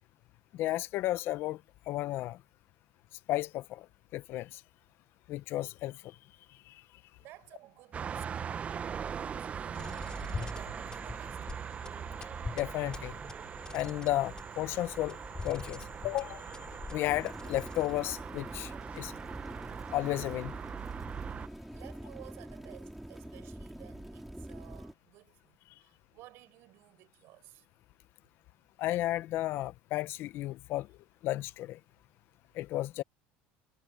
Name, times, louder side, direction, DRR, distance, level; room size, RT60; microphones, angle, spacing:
voice 1, 0.5-1.6 1.9-2.4 3.3-3.9 4.1-4.6 5.3-6.0 6.7-6.8 12.5-13.1 13.7-15.2 15.4-16.4 16.9-19.1 19.9-20.6 28.8-30.9 31.2-31.8 32.5-33.0, left 16 dB, 55° left, 1.0 m, -33 dB
voice 2, 7.2-11.7 21.4-27.7, right 18 dB, 60° right, 6.6 m, -55 dB
sound 1, 7.9-21.5, right 7 dB, 30° right, 0.9 m, -41 dB
sound 2, 9.7-18.2, left 4 dB, 15° left, 5.7 m, -44 dB
sound 3, 17.0-24.9, right 1 dB, 5° right, 4.4 m, -45 dB
supercardioid pair, 120°, 5 cm